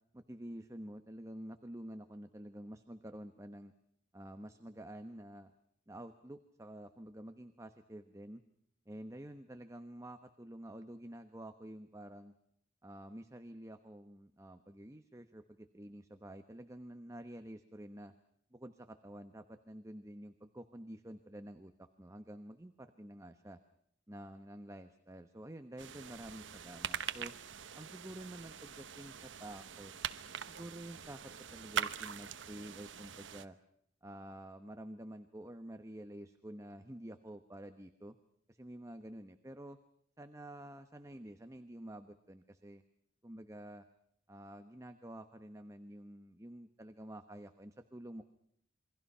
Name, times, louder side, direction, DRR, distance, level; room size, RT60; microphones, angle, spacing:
voice 1, 0.1-3.7 4.1-5.5 5.9-8.4 8.9-12.3 12.8-18.1 18.5-23.6 24.1-27.3 27.7-29.9 30.5-33.6 34.0-38.1 38.5-39.8 40.2-42.8 43.2-43.8 44.3-48.2, right 1 dB, 15° right, 8 dB, 1.0 m, -49 dB
sound 1, 25.8-33.5, right 8 dB, 70° right, 1.1 m, -43 dB
28.0 x 23.5 x 5.6 m, 0.72 s
head